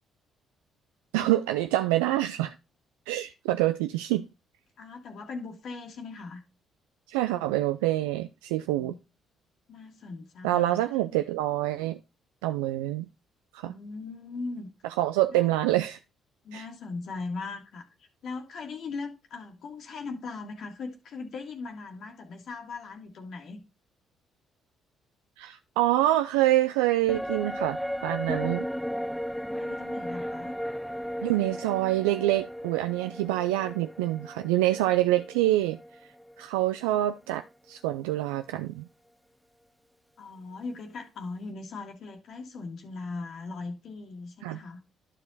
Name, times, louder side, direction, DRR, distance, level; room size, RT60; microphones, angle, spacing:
voice 1, 1.1-2.5 3.1-4.2 7.1-8.9 10.4-12.0 12.4-13.1 13.5-13.7 15.0-16.0 16.5-16.7 25.4-28.7 31.2-35.8 36.4-38.8 44.4-44.6, right 15 dB, 90° right, 0.4 m, -26 dB
voice 2, 4.8-6.4 8.7-9.0 9.7-10.8 13.6-14.7 15.3-15.5 16.4-23.6 29.3-30.5 40.2-44.8, left 4 dB, 65° left, 1.7 m, -39 dB
sound 1, 27.1-36.6 36.9-37.0, equal, ahead, 0.4 m, -35 dB
11.5 x 4.9 x 4.0 m
hypercardioid pair, 55°, 0 cm